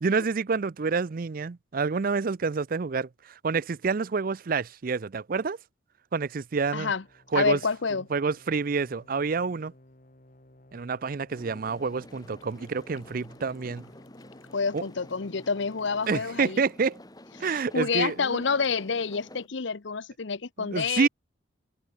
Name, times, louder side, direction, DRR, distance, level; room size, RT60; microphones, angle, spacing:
voice 1, 0.0-5.6 6.1-6.9 7.3-7.6 8.1-9.7 10.7-13.9 14.7-14.8 16.1-17.0 17.4-18.4 20.6-21.1, right 5 dB, 45° right, 0.5 m, -28 dB
voice 2, 6.7-7.0 7.3-8.0 14.5-16.6 17.7-21.1, left 5 dB, 65° left, 0.8 m, -28 dB
sound 1, 7.0-16.4, left 1 dB, 40° left, 2.5 m, -56 dB
sound 2, 11.3-19.5, left 1 dB, 20° left, 2.8 m, -50 dB
sound 3, 11.9-19.9, left 6 dB, 85° left, 6.5 m, -65 dB
head